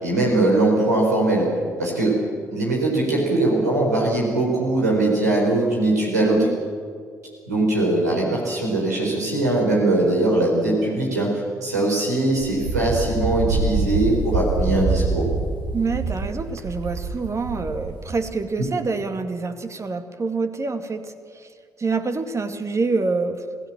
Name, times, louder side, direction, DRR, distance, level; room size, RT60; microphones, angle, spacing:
voice 1, 0.0-1.5 1.8-2.2 2.5-6.5 7.5-11.3 11.6-15.3, right 2 dB, 90° right, -2 dB, 4.6 m, -21 dB
voice 2, 6.2-6.6 15.7-21.5 21.8-23.4, right 4 dB, 35° right, 8 dB, 2.1 m, -26 dB
Wind, 12.4-18.3, right 3 dB, 65° right, 2.9 m, -25 dB
26.5 x 16.5 x 7.4 m, 2.1 s
figure-of-eight pair, 45°, 9 cm